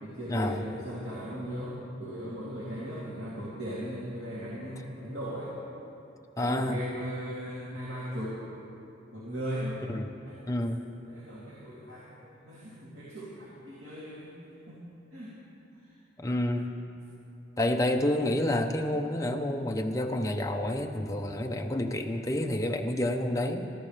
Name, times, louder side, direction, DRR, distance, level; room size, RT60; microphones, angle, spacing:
voice 1, 0.0-5.5 6.4-8.5 9.1-9.8 10.2-10.4 11.1-14.3 14.7-14.8 15.1-15.3 15.8-16.0, equal, 80° right, -8 dB, 2.8 m, -38 dB
voice 2, 6.4-6.8 9.9-10.1 10.5-10.8 16.2-16.8 17.6-23.7, left 1 dB, 15° left, 3 dB, 0.8 m, -29 dB
24.5 x 13.5 x 3.3 m, 2.8 s
head